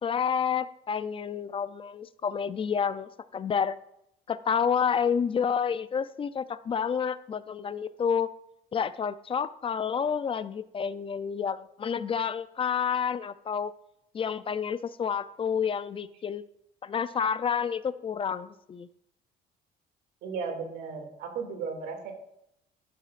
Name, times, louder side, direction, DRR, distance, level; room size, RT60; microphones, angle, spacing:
voice 1, 0.0-3.8 4.3-8.3 8.7-13.7 14.1-16.4 16.8-18.9, left 7 dB, 30° left, 14 dB, 0.4 m, -29 dB
voice 2, 20.2-22.1, right 5 dB, 85° right, 4 dB, 2.5 m, -35 dB
11.5 x 11.0 x 2.5 m, 0.78 s
cardioid pair, 110°, 17 cm